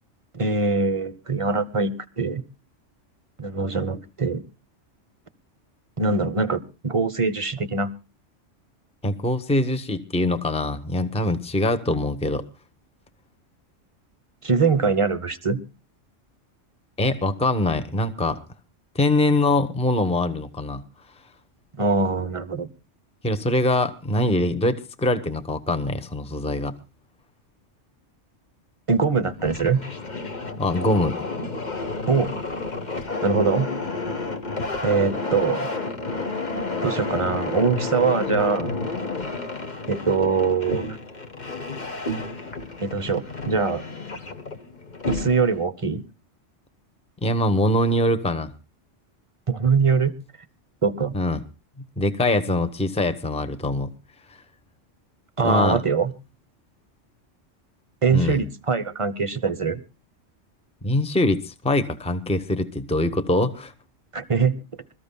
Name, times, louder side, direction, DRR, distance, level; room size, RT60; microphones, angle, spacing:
voice 1, 0.3-2.4 3.4-4.4 6.0-7.9 14.4-15.6 21.8-22.7 28.9-29.8 32.1-32.3 33.2-33.7 34.8-35.7 36.8-38.7 39.9-40.9 42.8-43.8 45.1-46.0 49.5-50.1 50.8-51.1 55.4-56.1 58.0-59.8 64.1-64.6, right 4 dB, 30° right, 14 dB, 0.8 m, -23 dB
voice 2, 9.0-12.4 17.0-18.4 18.9-20.8 23.2-26.8 30.6-31.1 47.2-48.5 51.1-51.4 52.0-53.9 55.4-55.8 58.1-58.4 60.8-63.7, left 1 dB, 5° left, 10 dB, 0.9 m, -23 dB
sound 1, 29.3-45.6, left 3 dB, 35° left, 1.4 m, -31 dB
27.0 x 14.0 x 2.2 m, 0.31 s
omnidirectional pair, 1.3 m